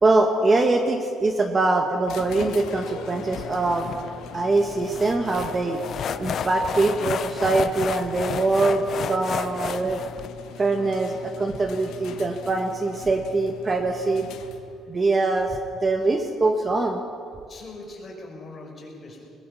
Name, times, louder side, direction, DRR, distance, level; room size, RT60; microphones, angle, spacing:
voice 1, 0.0-3.9 4.3-5.8 6.2-8.8 9.1-10.0 10.6-14.3 14.9-17.0, right 3 dB, 25° right, 5 dB, 1.3 m, -23 dB
sound 1, 2.1-14.8, left 5 dB, 75° left, 1.7 m, -41 dB
sound 2, 3.3-10.3, left 8 dB, 45° left, 0.7 m, -32 dB
voice 2, 17.5-19.3, left 2 dB, 30° left, 0 dB, 5.3 m, -41 dB
21.0 x 20.5 x 7.1 m, 2.3 s
cardioid pair, 135°, 0 cm